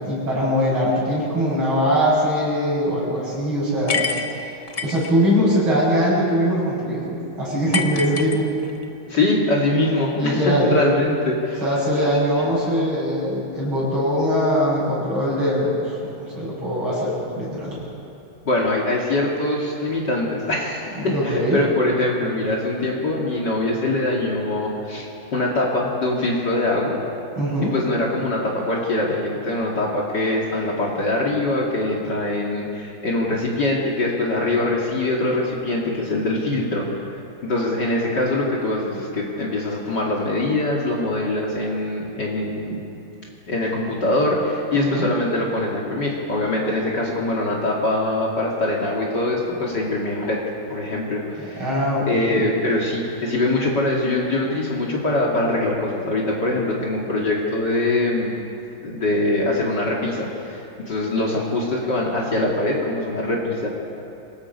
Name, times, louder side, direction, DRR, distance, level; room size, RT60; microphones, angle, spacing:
voice 1, 0.0-4.6 4.8-8.5 10.1-10.7 11.6-17.8 21.0-21.6 27.4-27.7 44.7-45.1 51.4-52.5, equal, 70° right, -6 dB, 7.2 m, -22 dB
sound 1, 3.9-5.1 7.7-8.9, left 5 dB, 75° left, 0.3 m, -26 dB
voice 2, 9.1-11.6 12.4-12.5 18.5-27.0 27.7-36.9 37.4-42.8 43.5-50.4 50.7-51.7 52.1-58.3 58.8-63.7, left 2 dB, 50° left, -3 dB, 2.8 m, -23 dB
27.5 x 19.0 x 5.4 m, 2.8 s
omnidirectional pair, 2.4 m